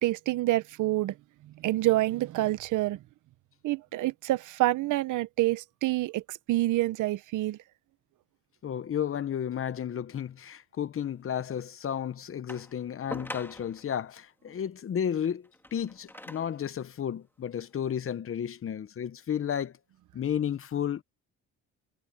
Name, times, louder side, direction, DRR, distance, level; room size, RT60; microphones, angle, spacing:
voice 1, 0.0-1.1 1.4-3.0 3.6-7.6, right 16 dB, 80° right, 0.9 m, -27 dB
voice 2, 8.6-19.7 20.1-21.0, left 9 dB, 45° left, 1.0 m, -32 dB
sound 1, 12.5-13.9 15.4-16.6 17.5-17.6, left 1 dB, 5° left, 2.7 m, -43 dB
cardioid pair, 90°, 30 cm